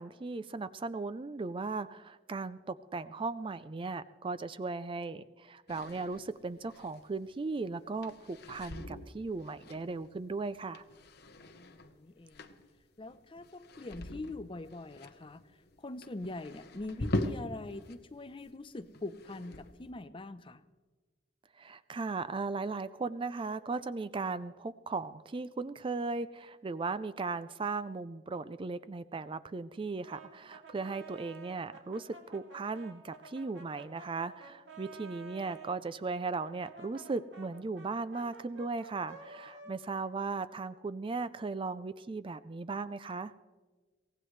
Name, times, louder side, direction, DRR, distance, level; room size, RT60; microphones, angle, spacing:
voice 1, 0.0-10.8 21.6-43.3, right 3 dB, 30° right, 14 dB, 0.4 m, -37 dB
sound 1, 5.7-18.0 18.3-19.9, left 1 dB, 60° left, 1.0 m, -42 dB
voice 2, 11.5-12.5 13.0-15.4 15.8-20.6, left 2 dB, 30° left, 12 dB, 0.6 m, -43 dB
Brass instrument, 30.0-35.8 36.4-41.2, right 4 dB, 75° right, 2.6 m, -52 dB
23.5 x 17.5 x 3.2 m, 1.3 s
head